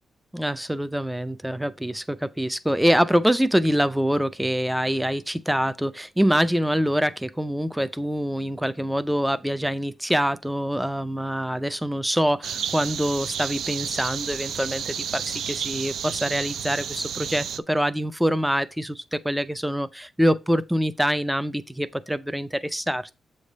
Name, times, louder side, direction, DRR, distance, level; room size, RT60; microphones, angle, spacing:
voice 1, 0.3-23.2, equal, 5° right, 0.3 m, -25 dB
sound 1, 12.4-17.6, right 8 dB, 85° right, 0.4 m, -31 dB
7.8 x 3.3 x 5.1 m
wide cardioid pair, 175°, 0 cm